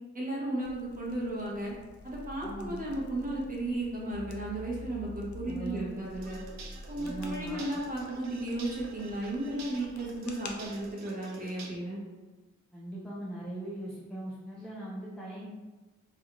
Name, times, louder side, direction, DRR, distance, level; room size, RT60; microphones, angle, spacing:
voice 1, 0.1-1.7 2.0-6.4 6.9-12.0, right 1 dB, 30° right, -5 dB, 0.8 m, -34 dB
sound 1, 0.6-11.0, left 3 dB, 80° left, 0.5 m, -52 dB
sound 2, 2.1-3.6 4.1-7.6, left 1 dB, 60° left, 0.8 m, -46 dB
voice 2, 2.4-2.8 5.4-6.0 6.9-7.7 12.7-15.5, right 1 dB, 5° left, -7 dB, 0.4 m, -40 dB
sound 3, 6.1-11.7, right 4 dB, 65° right, 0.5 m, -49 dB
2.5 x 2.3 x 2.9 m, 1.2 s
wide cardioid pair, 110°, 29 cm